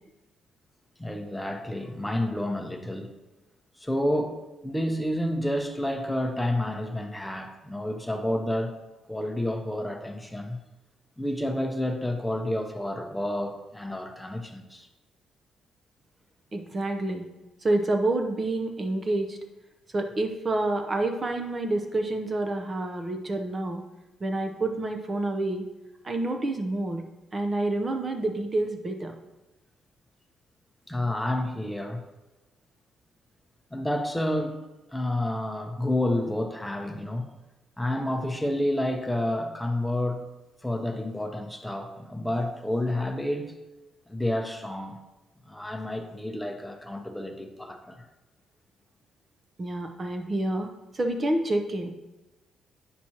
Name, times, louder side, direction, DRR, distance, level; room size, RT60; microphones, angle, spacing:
voice 1, 1.0-3.1 3.8-8.7 9.1-10.6 11.2-14.9 30.9-32.0 33.7-34.6 34.9-37.3 37.8-40.3 40.6-43.5 44.1-44.9 45.5-48.1, left 1 dB, 5° left, 4 dB, 0.8 m, -29 dB
voice 2, 16.5-17.3 17.6-19.4 19.9-23.8 24.2-25.7 26.0-27.0 27.3-29.2 49.6-50.7 50.9-51.9, right 2 dB, 35° right, 5 dB, 0.7 m, -28 dB
8.5 x 6.0 x 2.9 m, 1.0 s
cardioid pair, 90°, 0 cm